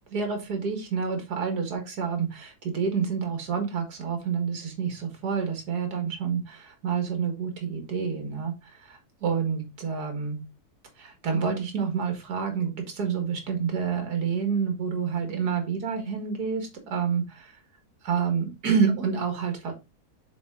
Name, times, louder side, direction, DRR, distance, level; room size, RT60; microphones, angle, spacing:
voice 1, 0.1-10.4 11.0-17.6 18.0-19.7, right 6 dB, 75° right, 5 dB, 2.2 m, -28 dB
7.1 x 4.4 x 3.6 m, 0.24 s
omnidirectional pair, 1.7 m